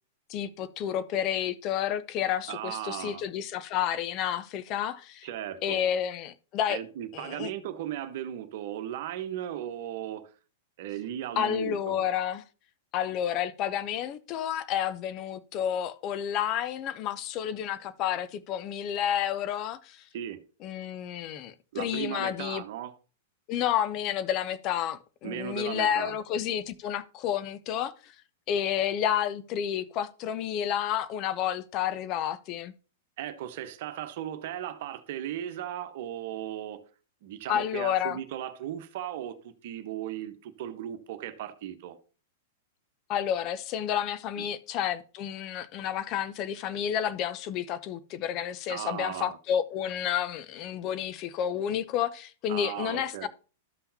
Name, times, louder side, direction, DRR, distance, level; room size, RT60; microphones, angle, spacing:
voice 1, 0.3-5.3 5.6-6.8 7.1-7.5 11.4-12.4 12.9-20.0 20.6-22.6 23.5-28.1 28.5-32.7 37.5-38.2 43.1-53.3, left 10 dB, 40° left, 0.6 m, -30 dB
voice 2, 2.5-3.2 5.2-5.9 6.7-10.3 10.8-12.0 20.1-20.4 21.7-22.9 25.2-26.1 33.2-36.8 37.2-42.0 44.4-44.5 48.7-49.4 52.5-53.3, right 11 dB, 55° right, 1.0 m, -36 dB
12.5 x 5.6 x 2.8 m
hypercardioid pair, 100°, 0 cm